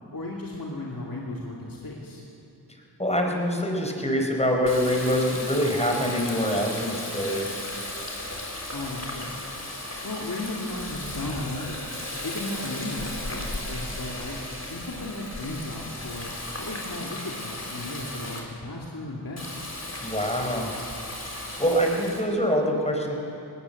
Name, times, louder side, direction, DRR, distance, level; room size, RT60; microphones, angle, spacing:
voice 1, 0.1-2.2 8.7-9.3 10.0-14.4 14.7-16.3 16.6-19.5, left 2 dB, 55° left, -3 dB, 2.7 m, -35 dB
voice 2, 3.0-7.6 20.0-20.7 21.6-23.2, equal, 15° left, 2 dB, 4.3 m, -25 dB
Water tap faucet, 4.6-18.4 19.4-22.2, left 1 dB, 40° left, 3.8 m, -36 dB
19.5 x 19.0 x 7.9 m, 3.0 s
wide cardioid pair, 45°, 40 cm